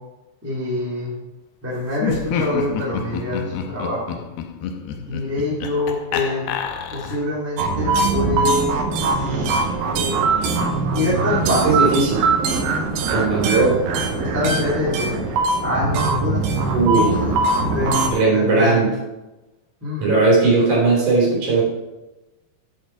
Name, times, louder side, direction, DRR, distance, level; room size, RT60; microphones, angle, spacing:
voice 1, 0.4-1.1 1.6-4.2 4.9-6.5 6.9-8.8 9.1-10.3 10.9-11.9 14.1-15.3 15.6-16.4 16.9-17.3 17.6-18.1 18.3-18.8 19.8-20.2, left 2 dB, 5° right, -6 dB, 1.7 m, -25 dB
Laughter, 1.9-7.4, left 7 dB, 80° left, 2.5 m, -28 dB
sound 1, 7.6-18.1, right 3 dB, 70° right, 2.2 m, -21 dB
voice 2, 11.6-12.3 13.1-13.8 16.7-17.1 18.1-18.9 20.0-21.6, right 3 dB, 45° right, -4 dB, 4.4 m, -17 dB
8.8 x 7.8 x 4.5 m, 1.0 s
omnidirectional pair, 5.0 m